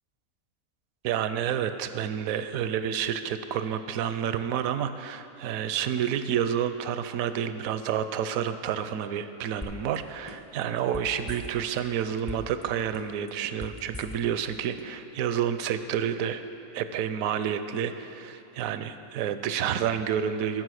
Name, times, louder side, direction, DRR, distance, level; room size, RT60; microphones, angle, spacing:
voice 1, 1.0-16.4 16.7-20.6, right 9 dB, 80° right, 11 dB, 1.0 m, -29 dB
sound 1, 9.6-10.0 10.3-11.8 12.1-12.6 12.9-14.5 14.8-14.9, left 2 dB, 25° left, 0.5 m, -40 dB
15.0 x 5.4 x 6.4 m, 2.6 s
omnidirectional pair, 1.4 m